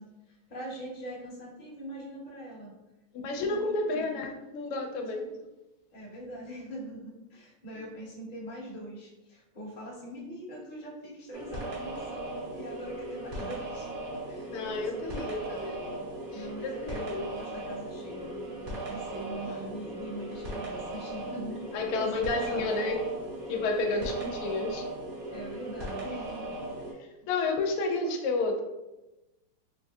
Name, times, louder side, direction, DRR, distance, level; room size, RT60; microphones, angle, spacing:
voice 1, 0.0-2.7 3.2-3.6 3.8-4.2 5.1-5.4 5.9-13.9 14.2-14.6 14.9-15.2 16.3-21.6 21.8-23.2 23.9-24.1 25.3-26.6 27.2-27.3, right 1 dB, 35° left, -5 dB, 0.9 m, -42 dB
voice 2, 3.1-5.3 14.5-16.1 16.3-17.3 19.1-19.6 21.7-23.0 23.5-24.8 27.3-28.6, left 3 dB, 85° left, 3 dB, 1.5 m, -31 dB
sound 1, 11.3-26.9, right 1 dB, 50° right, 1.3 m, -38 dB
4.0 x 3.5 x 2.3 m, 1.0 s
omnidirectional pair, 2.4 m